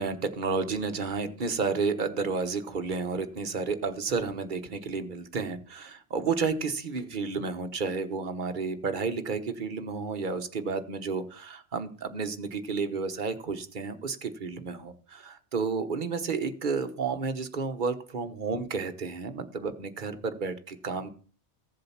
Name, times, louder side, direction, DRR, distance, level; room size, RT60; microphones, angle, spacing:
voice 1, 0.0-21.1, right 4 dB, 40° right, 8 dB, 1.3 m, -31 dB
15.0 x 7.7 x 5.7 m, 0.40 s
omnidirectional pair, 1.3 m